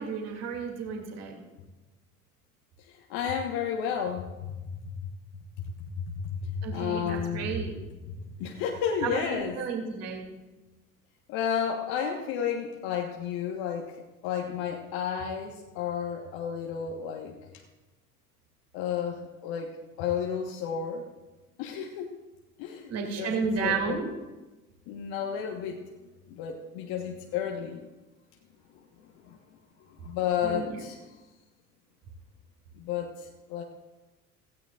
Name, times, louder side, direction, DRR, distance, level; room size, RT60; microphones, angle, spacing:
voice 1, 0.0-1.4 6.6-7.7 9.0-10.3 22.9-24.1 30.4-30.8, right 5 dB, 35° right, 1 dB, 2.7 m, -32 dB
voice 2, 2.8-4.3 6.1-7.5 8.4-9.6 11.3-17.6 18.7-21.1 21.6-22.1 22.6-24.0 24.9-25.8 26.3-27.8 29.2-29.4 30.0-31.0 32.8-33.6, left 8 dB, 50° left, 2 dB, 1.4 m, -32 dB
17.5 x 16.0 x 2.5 m, 1.2 s
figure-of-eight pair, 70°, 44 cm